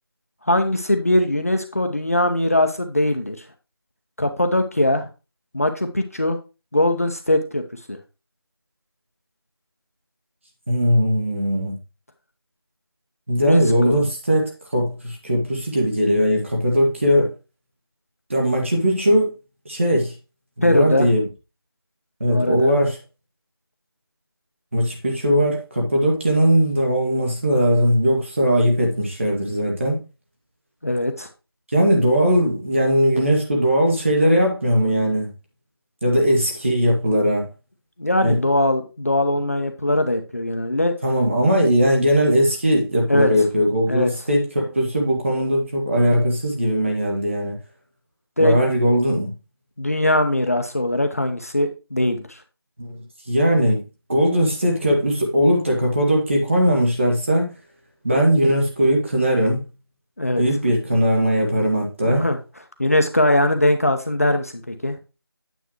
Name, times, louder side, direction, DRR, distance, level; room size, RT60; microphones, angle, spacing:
voice 1, 0.4-3.5 4.2-5.1 5.5-6.4 6.7-7.6 7.9-8.0 13.4-14.0 20.6-21.1 22.3-22.7 30.8-31.3 38.0-40.9 43.1-43.3 43.9-44.1 48.4-48.7 49.8-52.4 60.2-60.4 62.0-62.4 62.8-65.0, left 1 dB, 35° left, 6 dB, 0.7 m, -21 dB
voice 2, 10.7-11.8 13.3-17.3 18.3-19.3 19.7-20.1 20.6-21.2 22.2-23.0 24.7-30.0 31.7-35.3 36.0-37.5 38.2-38.4 41.0-47.5 48.4-49.3 52.8-53.8 54.1-57.5 58.0-59.6 60.4-62.2, equal, 30° right, 0 dB, 1.9 m, -19 dB
9.2 x 7.0 x 3.0 m, 0.29 s
figure-of-eight pair, 175°, 13 cm